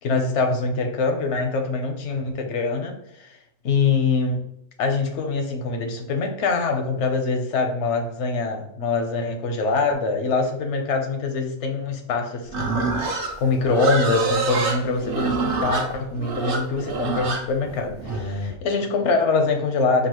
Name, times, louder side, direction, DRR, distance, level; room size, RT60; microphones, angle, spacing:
voice 1, 0.0-3.4 3.6-4.4 4.8-20.1, left 4 dB, 80° left, 5 dB, 1.0 m, -24 dB
Livestock farm animals working animals, 12.5-18.6, right 3 dB, 55° right, 0.8 m, -26 dB
5.4 x 2.4 x 3.0 m, 0.75 s
omnidirectional pair, 1.2 m